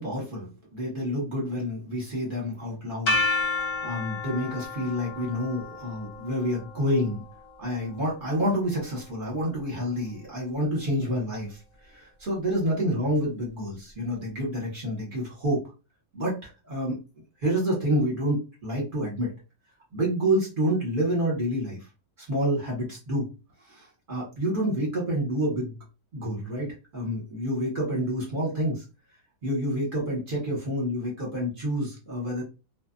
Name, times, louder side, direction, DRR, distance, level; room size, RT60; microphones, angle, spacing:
voice 1, 0.0-3.2 3.6-7.2 7.6-15.6 16.1-17.0 17.4-19.3 19.9-21.8 22.2-23.3 23.7-25.7 26.1-28.8 29.4-32.4, equal, 35° right, -3 dB, 1.1 m, -28 dB
sound 1, 3.1-9.0, left 3 dB, 45° left, 1.0 m, -32 dB
2.6 x 2.5 x 2.5 m, 0.30 s
omnidirectional pair, 1.9 m